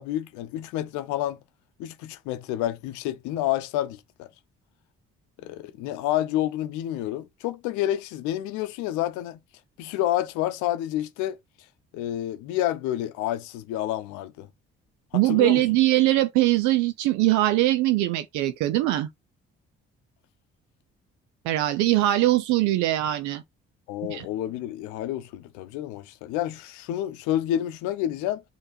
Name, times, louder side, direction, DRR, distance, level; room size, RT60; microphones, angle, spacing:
voice 1, 0.0-1.4 1.8-4.3 5.4-9.4 9.8-11.4 11.9-14.5 15.1-15.6 23.9-28.4, left 13 dB, 80° left, 0.7 m, -29 dB
voice 2, 15.1-19.1 21.4-23.4 24.1-24.3, right 16 dB, 80° right, 0.6 m, -22 dB
6.4 x 3.0 x 2.5 m
hypercardioid pair, 50°, 29 cm